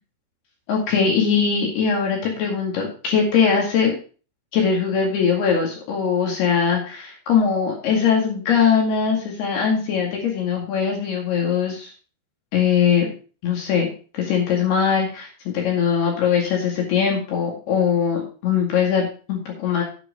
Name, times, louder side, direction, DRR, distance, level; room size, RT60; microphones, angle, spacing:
voice 1, 0.7-3.9 4.5-11.9 12.5-13.1 13.4-13.9 14.1-19.8, left 6 dB, 60° left, 0 dB, 3.9 m, -21 dB
9.9 x 7.8 x 5.0 m, 0.38 s
omnidirectional pair, 5.4 m